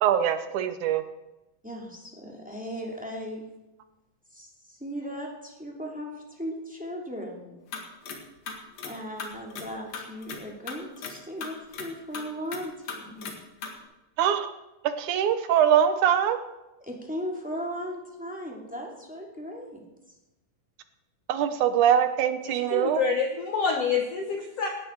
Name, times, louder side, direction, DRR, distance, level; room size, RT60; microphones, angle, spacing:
voice 1, 0.0-1.0 14.2-14.5 15.0-16.4 21.3-23.0, right 9 dB, 75° right, 10 dB, 1.9 m, -23 dB
voice 2, 1.6-3.4 4.3-7.6 8.8-13.4 16.8-19.8, equal, 5° right, -1 dB, 1.8 m, -37 dB
sound 1, 7.7-8.2 8.5-8.9 9.2-10.4 10.7-11.1 11.4-11.9 12.1-12.6 12.9-13.3 13.6-13.7, left 5 dB, 50° left, 2.5 m, -36 dB
voice 3, 22.5-24.7, left 5 dB, 70° left, 3 dB, 1.5 m, -27 dB
17.5 x 12.5 x 4.6 m, 1.0 s
omnidirectional pair, 4.3 m